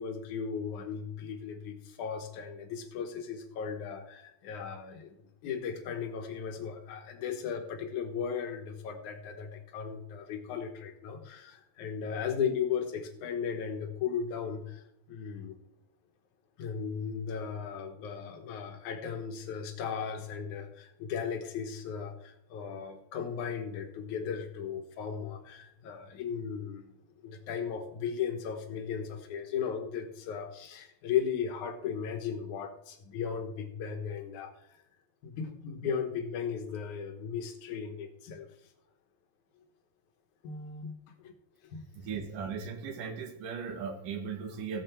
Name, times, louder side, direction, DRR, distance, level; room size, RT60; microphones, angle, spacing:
voice 1, 0.0-5.2 5.4-15.6 16.6-26.9 27.2-34.6 35.2-38.5 40.4-40.9 41.2-41.3 41.6-41.8, left 7 dB, 65° left, 6 dB, 2.4 m, -36 dB
voice 2, 42.0-44.8, right 6 dB, 70° right, 6 dB, 2.9 m, -37 dB
15.0 x 7.6 x 4.5 m, 0.76 s
omnidirectional pair, 4.0 m